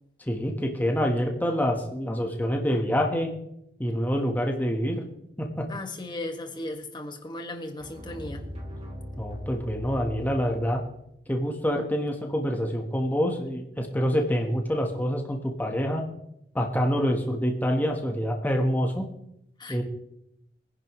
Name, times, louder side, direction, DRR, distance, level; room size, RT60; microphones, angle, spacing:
voice 1, 0.2-3.3 3.8-5.0 5.4-5.7 9.2-10.8 11.3-16.0 16.5-19.1 19.7-19.8, equal, 10° left, 2 dB, 1.3 m, -26 dB
voice 2, 5.7-8.4 19.6-19.8, left 1 dB, 25° left, 4 dB, 1.8 m, -36 dB
sound 1, 7.8-10.9, left 1 dB, 35° right, 2.6 m, -39 dB
23.0 x 11.0 x 3.2 m, 0.78 s
head